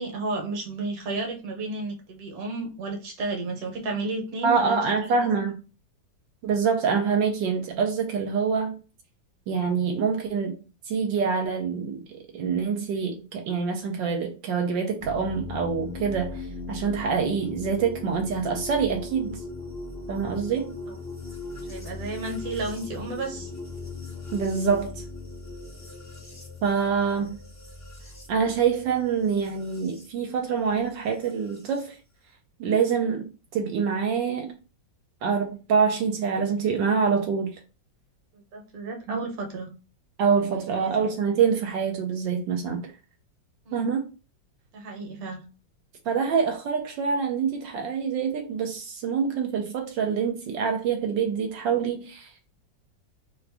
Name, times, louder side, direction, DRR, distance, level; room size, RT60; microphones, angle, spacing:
voice 1, 0.0-5.1 20.9-21.0 21.7-23.5 38.3-39.7 40.4-41.1 43.6-43.9 44.7-45.4, right 3 dB, 60° right, 1.2 m, -33 dB
voice 2, 4.4-5.6 6.4-8.8 9.5-12.0 12.3-19.4 20.1-20.7 24.3-25.0 26.6-27.4 28.3-32.0 32.6-34.5 35.2-37.6 39.1-39.2 40.2-42.9 43.7-44.0 46.1-52.3, right 6 dB, 80° right, 1.3 m, -26 dB
sound 1, 15.0-30.1 31.2-31.9, left 3 dB, 15° left, 0.5 m, -39 dB
3.1 x 2.5 x 3.4 m
omnidirectional pair, 2.0 m